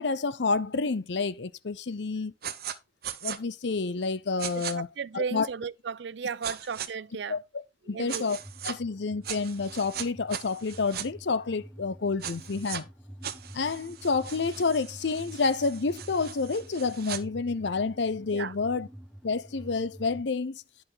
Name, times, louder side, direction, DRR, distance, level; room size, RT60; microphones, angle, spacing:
voice 1, 0.0-2.3 3.2-4.9 5.1-5.5 7.3-7.4 7.9-8.4 8.6-12.9 13.5-18.9 19.2-20.6, left 4 dB, 75° left, 0.7 m, -29 dB
sound 1, 2.4-2.8 3.0-3.4 4.4-4.7 6.4-6.9 8.1-8.8 9.2-11.1 12.2-12.8 13.2-17.2, right 9 dB, 55° right, 0.9 m, -38 dB
voice 2, 4.7-7.4 7.9-8.2 18.3-18.5, right 5 dB, 70° right, 0.5 m, -35 dB
sound 2, 8.4-20.2, equal, ahead, 1.9 m, -48 dB
10.0 x 6.0 x 3.9 m
head